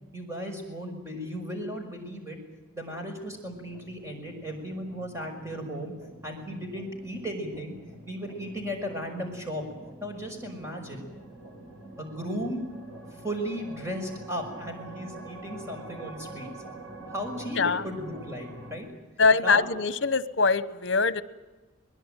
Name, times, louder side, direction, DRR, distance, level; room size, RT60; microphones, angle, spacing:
voice 1, 0.1-2.4 2.7-5.9 6.2-7.7 8.1-9.6 10.0-11.1 12.0-12.6 13.1-16.5 17.1-18.9 19.3-19.7, equal, 15° right, 3 dB, 5.7 m, -35 dB
sound 1, 3.2-18.8, right 2 dB, 90° right, 6.9 m, -46 dB
voice 2, 19.2-21.2, left 4 dB, 65° left, 15 dB, 1.1 m, -23 dB
22.5 x 21.5 x 9.1 m, 1.1 s
head